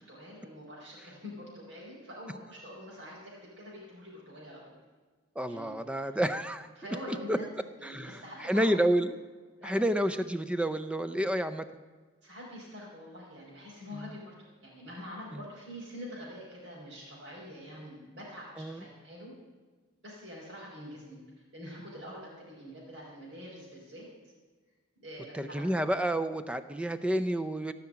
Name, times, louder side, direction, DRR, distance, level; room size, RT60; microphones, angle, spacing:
voice 1, 0.1-4.8 5.5-5.7 6.8-7.4 7.8-8.6 9.5-9.8 12.2-14.3 14.6-19.3 20.0-21.2 21.5-24.0 25.0-25.6, equal, 65° right, -7 dB, 4.0 m, -45 dB
voice 2, 5.4-6.7 7.3-7.4 7.8-9.2 9.6-11.6 13.9-14.0 15.3-15.4 18.6-18.8 25.3-27.7, right 1 dB, 5° right, 11 dB, 0.5 m, -29 dB
15.5 x 5.8 x 8.6 m, 1.4 s
head